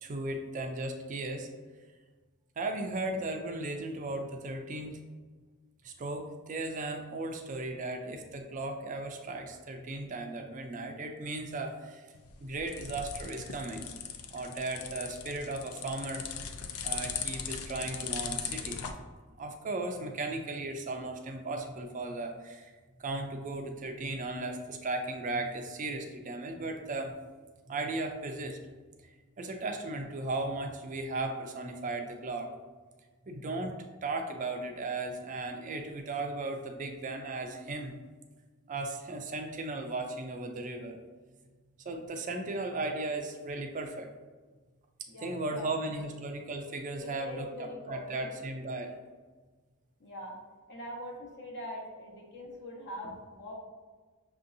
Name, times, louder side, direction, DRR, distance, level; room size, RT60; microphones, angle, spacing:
voice 1, 0.0-1.5 2.6-5.0 5.8-12.0 12.4-13.9 14.3-16.3 16.8-18.8 19.4-22.7 23.0-27.1 27.7-28.6 29.0-32.5 33.3-37.9 38.7-41.0 41.8-44.1 45.2-48.9, right 2 dB, 35° right, 4 dB, 0.4 m, -36 dB
sound 1, 12.1-18.9, left 7 dB, 80° left, 0.4 m, -39 dB
voice 2, 45.1-45.7 47.0-48.3 50.0-50.4 50.7-53.5, left 1 dB, 55° left, -2 dB, 1.0 m, -43 dB
6.0 x 2.7 x 2.5 m, 1.4 s
head